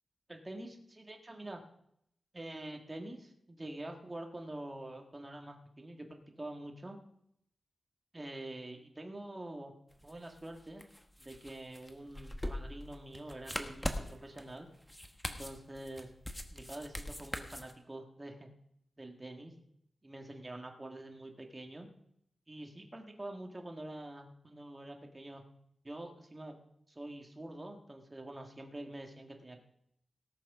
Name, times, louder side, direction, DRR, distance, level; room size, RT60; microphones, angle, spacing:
voice 1, 0.3-1.6 2.3-7.0 8.1-9.7 10.0-10.8 11.2-14.7 15.2-16.1 16.5-18.5 19.0-19.5 20.0-21.9 22.5-25.4 25.8-26.5 26.9-29.7, right 1 dB, 20° right, 3 dB, 1.6 m, -46 dB
sound 1, 9.9-17.7, left 1 dB, 5° left, 1.1 m, -42 dB
18.0 x 6.1 x 6.0 m, 0.72 s
wide cardioid pair, 155°, 0 cm